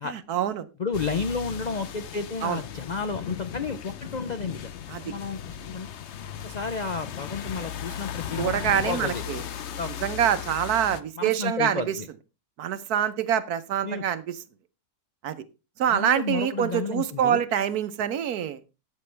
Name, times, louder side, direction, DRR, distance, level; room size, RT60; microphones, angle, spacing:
voice 1, 0.1-0.7 2.4-2.6 4.9-5.1 8.4-9.4 10.0-12.0 12.6-14.4 15.2-15.4 15.8-18.6, right 9 dB, 75° right, 12 dB, 1.2 m, -25 dB
voice 2, 0.8-4.7 5.0-5.9 6.4-9.2 9.8-9.9 11.2-12.1 13.8-14.1 15.9-17.4, left 4 dB, 75° left, 10 dB, 0.4 m, -32 dB
sound 1, 0.9-11.0, left 9 dB, 55° left, 0.8 m, -37 dB
13.0 x 8.5 x 3.3 m, 0.28 s
omnidirectional pair, 1.7 m